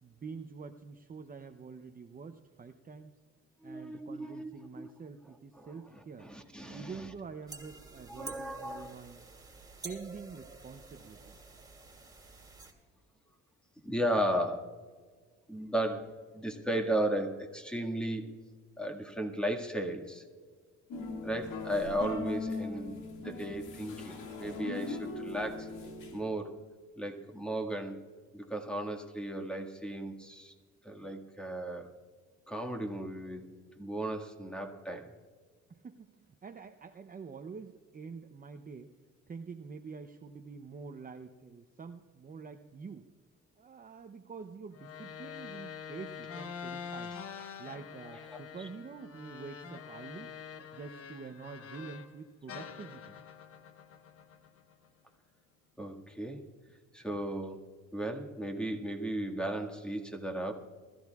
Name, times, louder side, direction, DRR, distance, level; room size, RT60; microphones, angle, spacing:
voice 1, 0.0-3.1 3.6-6.3 6.7-9.2 9.8-11.3 35.7-38.9 39.3-43.1 43.6-47.2 47.6-50.3 50.7-53.2, right 5 dB, 30° right, 6 dB, 0.7 m, -46 dB
voice 2, 3.6-4.5 4.8-4.9 5.6-5.7 6.2-7.1 8.1-8.9 13.8-14.7 15.5-18.3 18.8-20.2 21.2-25.7 26.1-26.6 27.0-28.0 28.3-30.5 30.8-31.9 32.5-33.4 33.7-35.1 48.3-48.4 55.8-56.5 56.9-60.5, right 1 dB, 5° left, 3 dB, 1.8 m, -35 dB
sound 1, 7.5-12.7, right 3 dB, 15° right, 2.7 m, -49 dB
sound 2, 20.9-26.2, left 3 dB, 85° left, 2.0 m, -40 dB
sound 3, 44.7-52.1 52.5-54.9, left 7 dB, 50° left, 1.1 m, -45 dB
21.5 x 14.0 x 2.4 m, 1.5 s
cardioid pair, 90°, 30 cm